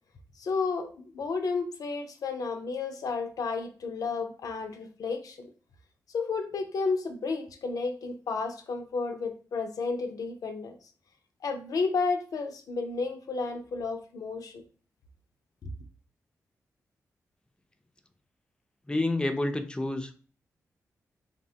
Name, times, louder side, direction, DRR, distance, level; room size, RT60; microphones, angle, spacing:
voice 1, 0.4-5.5 6.1-10.8 11.4-14.6 15.6-15.7, left 4 dB, 65° left, 6 dB, 0.5 m, -32 dB
voice 2, 18.9-20.1, left 2 dB, 15° left, 7 dB, 0.5 m, -29 dB
3.1 x 2.1 x 2.7 m, 0.40 s
supercardioid pair, 40°, 7 cm